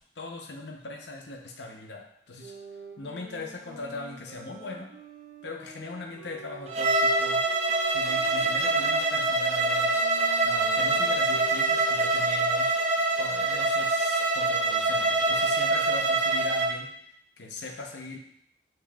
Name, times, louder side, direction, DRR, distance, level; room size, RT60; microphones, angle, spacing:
voice 1, 0.2-2.5 3.0-4.9 5.4-7.4 7.9-10.1 10.4-12.8 13.2-16.9 17.4-18.2, left 3 dB, 75° left, 1 dB, 0.7 m, -40 dB
sound 1, 2.4-12.3, right 4 dB, 55° right, 0.9 m, -46 dB
Bowed string instrument, 6.7-16.7, right 2 dB, 35° right, 0.5 m, -25 dB
7.2 x 2.9 x 2.3 m, 0.70 s
head